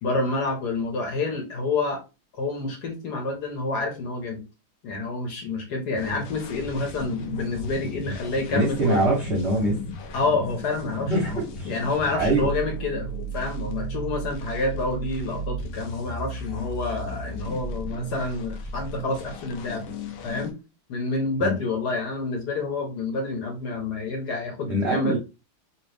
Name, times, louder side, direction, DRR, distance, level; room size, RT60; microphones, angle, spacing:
voice 1, 0.0-2.0 2.4-4.4 4.8-9.0 10.1-19.8 20.2-20.6 20.9-25.1, left 3 dB, 60° left, 3 dB, 1.3 m, -28 dB
sound 1, 6.0-20.5, right 1 dB, 75° left, 0.7 m, -35 dB
voice 2, 8.5-9.8 11.1-11.8 12.1-12.6 21.4-21.5 24.7-25.2, right 1 dB, 50° right, -3 dB, 0.9 m, -23 dB
3.1 x 2.9 x 3.3 m, 0.28 s
omnidirectional pair, 2.3 m